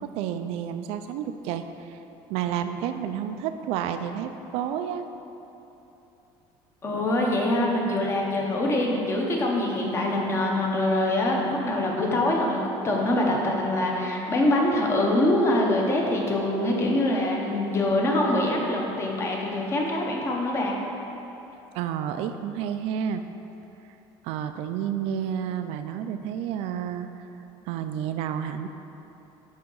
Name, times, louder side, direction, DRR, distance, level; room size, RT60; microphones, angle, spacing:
voice 1, 0.0-2.0 2.3-5.1 21.7-23.2 24.2-27.1 27.7-28.7, right 9 dB, 75° right, 8 dB, 0.4 m, -30 dB
voice 2, 6.8-20.8, left 1 dB, 25° left, -1 dB, 0.9 m, -24 dB
10.5 x 3.7 x 3.9 m, 3.0 s
cardioid pair, 155°, 10 cm